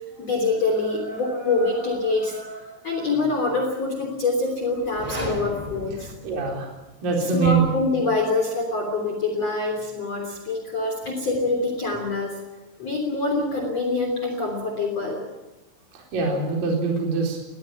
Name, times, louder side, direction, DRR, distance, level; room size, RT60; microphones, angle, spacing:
voice 1, 0.2-6.1 7.3-12.4 12.8-15.2, left 3 dB, 35° left, 2 dB, 4.0 m, -25 dB
sound 1, 4.8-6.9, equal, 10° right, 3.1 m, -35 dB
voice 2, 6.0-6.7 7.0-7.7 15.9-17.4, right 4 dB, 50° right, 0 dB, 5.5 m, -23 dB
21.0 x 19.5 x 9.1 m, 1.0 s
omnidirectional pair, 5.5 m